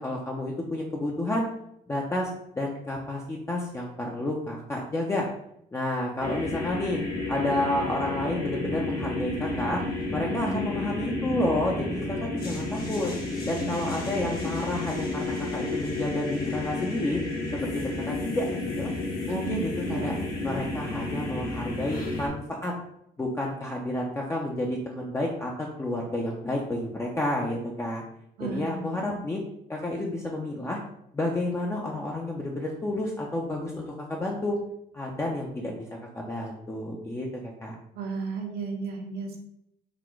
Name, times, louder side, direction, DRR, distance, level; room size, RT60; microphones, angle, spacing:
voice 1, 0.0-1.5 1.9-2.3 2.6-5.3 5.7-7.0 7.3-9.8 10.1-13.1 13.5-17.2 17.6-18.9 19.3-20.2 20.4-22.7 23.2-28.0 28.4-29.4 29.7-30.8 31.1-34.6 34.9-35.9 36.1-37.8, left 1 dB, 15° left, -1 dB, 0.6 m, -30 dB
sound 1, 6.2-22.3, left 2 dB, 60° left, 1.3 m, -31 dB
voice 2, 10.3-10.7 19.3-20.1 28.4-29.2 37.9-39.4, right 5 dB, 70° right, 1 dB, 0.9 m, -34 dB
4.1 x 2.2 x 4.4 m, 0.75 s
cardioid pair, 110°, 17 cm